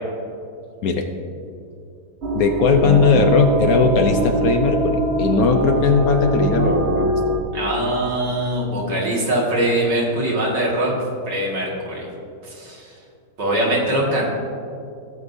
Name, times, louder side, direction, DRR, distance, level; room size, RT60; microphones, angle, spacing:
sound 1, 2.2-7.4, right 2 dB, 55° right, 0.8 m, -22 dB
voice 1, 2.3-7.1, left 4 dB, 65° left, 4 dB, 1.0 m, -18 dB
voice 2, 7.5-10.9 11.3-12.1 12.4-12.9 13.4-14.3, right 1 dB, 75° right, -4 dB, 2.6 m, -22 dB
15.0 x 7.7 x 2.7 m, 2.6 s
omnidirectional pair, 1.9 m